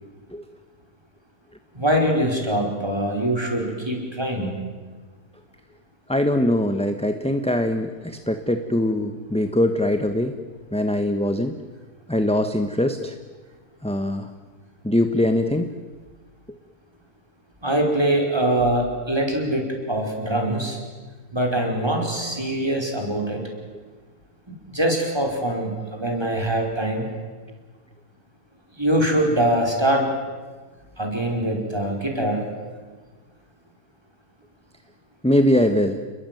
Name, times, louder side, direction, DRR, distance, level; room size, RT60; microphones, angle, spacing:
voice 1, 1.7-4.5 17.6-20.8 21.3-23.4 24.7-27.0 28.8-30.1 31.0-32.5, right 1 dB, 15° right, 1 dB, 5.3 m, -23 dB
voice 2, 6.1-10.3 10.7-11.6 12.1-13.1 13.8-14.3 14.8-15.7 35.2-36.0, left 1 dB, 5° left, 7 dB, 1.1 m, -22 dB
29.5 x 21.5 x 9.3 m, 1.4 s
omnidirectional pair, 1.7 m